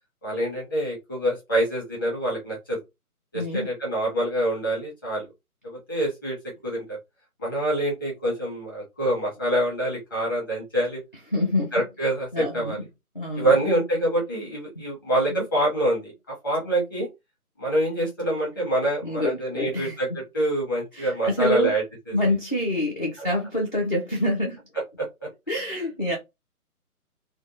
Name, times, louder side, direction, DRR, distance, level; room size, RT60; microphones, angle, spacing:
voice 1, 0.2-2.8 3.3-5.3 5.6-6.4 6.6-7.0 7.4-11.0 11.7-12.8 13.3-17.1 17.6-22.1 23.2-23.3 25.0-25.1, right 1 dB, 15° left, 0.9 m, -26 dB
voice 2, 3.3-3.7 11.3-11.7 12.3-12.8 13.1-13.6 15.3-15.4 19.0-20.0 20.9-21.7 22.1-24.6 25.5-26.2, left 1 dB, 30° left, 0.5 m, -26 dB
3.4 x 2.1 x 2.6 m
figure-of-eight pair, 150°, 46 cm